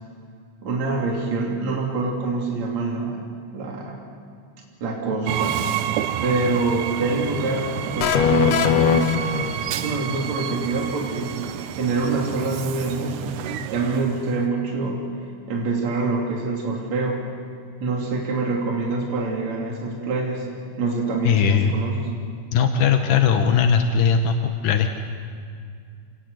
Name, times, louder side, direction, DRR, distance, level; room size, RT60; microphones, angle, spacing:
voice 1, 0.6-3.2 3.5-4.0 4.8-5.7 6.2-9.1 9.7-11.4 11.8-13.4 13.7-15.2 15.5-17.2 17.8-20.5 20.8-22.1, right 3 dB, 55° right, -2 dB, 4.0 m, -25 dB
Train, 5.3-14.4, right 10 dB, 80° right, 2.3 m, -29 dB
sound 1, 8.0-10.0, left 8 dB, 65° left, 2.1 m, -20 dB
voice 2, 21.2-21.8 22.5-24.4 24.6-24.9, left 7 dB, 80° left, 5 dB, 2.7 m, -19 dB
28.0 x 19.5 x 8.0 m, 2.2 s
omnidirectional pair, 3.8 m